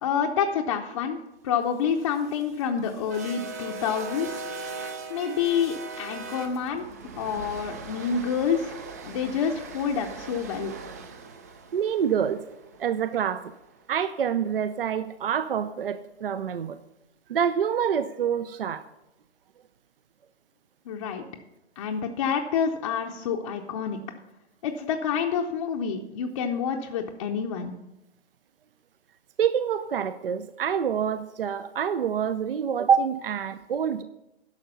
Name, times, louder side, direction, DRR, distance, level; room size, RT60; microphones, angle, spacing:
voice 1, 0.0-1.2 1.4-4.5 5.1-6.9 7.2-10.8 20.9-21.2 21.8-24.0 24.6-27.7, left 7 dB, 30° left, 1 dB, 0.7 m, -28 dB
sound 1, 1.8-14.0, right 4 dB, 15° right, 0.4 m, -40 dB
voice 2, 11.7-12.4 12.8-13.5 13.9-16.8 17.3-18.8 29.4-34.0, right 8 dB, 55° right, 13 dB, 0.6 m, -26 dB
11.5 x 6.5 x 6.8 m, 0.92 s
figure-of-eight pair, 130°, 33 cm